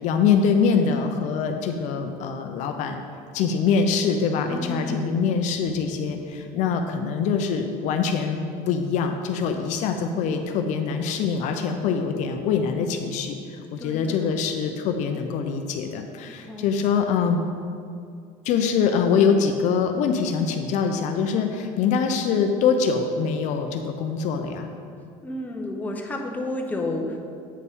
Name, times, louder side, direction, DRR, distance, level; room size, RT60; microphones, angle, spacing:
voice 1, 0.0-3.0 3.3-8.4 8.7-17.4 18.4-24.7, left 6 dB, 55° left, 5 dB, 0.5 m, -24 dB
voice 2, 4.4-5.2 13.8-14.3 16.4-16.7 17.2-17.3 25.2-27.2, left 2 dB, 10° left, 1 dB, 0.6 m, -31 dB
8.2 x 4.2 x 3.5 m, 2.4 s
cardioid pair, 135°, 15 cm